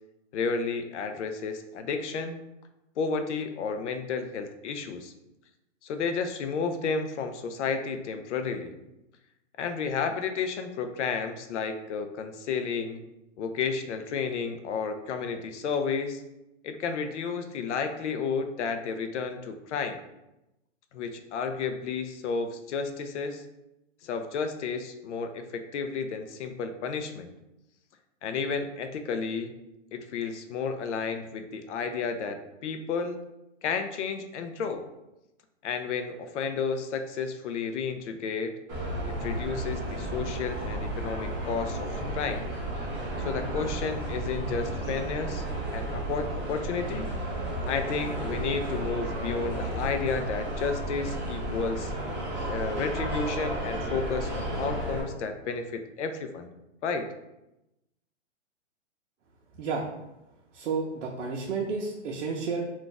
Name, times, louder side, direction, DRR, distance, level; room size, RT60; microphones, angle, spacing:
voice 1, 0.3-2.4 3.0-5.1 5.8-8.8 9.6-13.0 13.4-16.2 16.6-20.0 20.9-23.4 24.0-27.3 28.2-29.5 29.9-33.2 33.6-34.8 35.6-38.5 39.1-42.4 43.2-45.4 45.7-47.1 47.7-51.9 52.5-56.5 56.8-57.1, left 5 dB, 70° left, 7 dB, 0.5 m, -32 dB
sound 1, 38.7-55.0, right 1 dB, 15° right, 0.6 m, -33 dB
voice 2, 60.5-62.6, right 4 dB, 75° right, -1 dB, 0.6 m, -31 dB
2.5 x 2.3 x 3.8 m, 0.92 s
hypercardioid pair, 170°, 37 cm